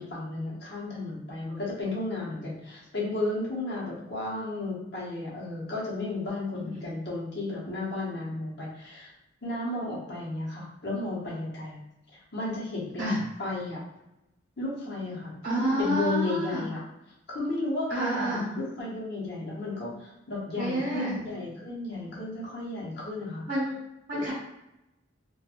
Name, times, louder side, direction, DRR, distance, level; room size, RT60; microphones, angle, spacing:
voice 1, 0.0-9.1 9.4-11.8 12.3-13.1 13.4-13.8 14.6-16.8 17.3-23.4 24.1-24.2, left 2 dB, 60° left, -7 dB, 0.8 m, -33 dB
voice 2, 6.6-6.9 13.0-13.2 15.4-16.6 17.9-18.4 20.5-21.2 23.5-23.8 24.1-24.3, right 1 dB, 50° right, -7 dB, 0.7 m, -29 dB
3.0 x 2.3 x 2.4 m, 0.90 s
head